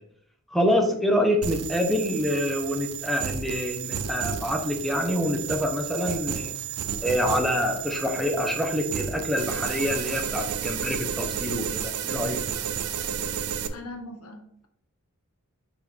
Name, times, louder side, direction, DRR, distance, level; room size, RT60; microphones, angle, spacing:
voice 1, 0.5-6.5 7.0-12.4, equal, ahead, 2 dB, 1.0 m, -26 dB
sound 1, 1.4-13.7, right 8 dB, 80° right, 0.6 m, -32 dB
voice 2, 13.7-14.7, left 2 dB, 80° left, 4 dB, 1.1 m, -40 dB
7.2 x 4.5 x 3.6 m, 0.67 s
head